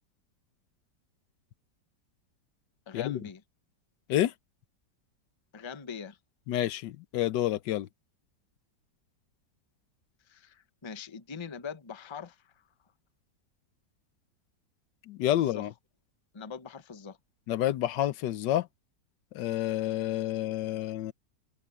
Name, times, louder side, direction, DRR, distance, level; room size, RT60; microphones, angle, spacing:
voice 1, 2.9-3.4 5.5-6.2 10.3-12.5 15.4-15.7 16.3-17.2, left 6 dB, 25° left, 0.7 m, -42 dB
voice 2, 6.5-7.9 15.1-15.7 17.5-18.7 19.3-21.1, left 13 dB, 80° left, 1.4 m, -29 dB
open air
omnidirectional pair, 1.9 m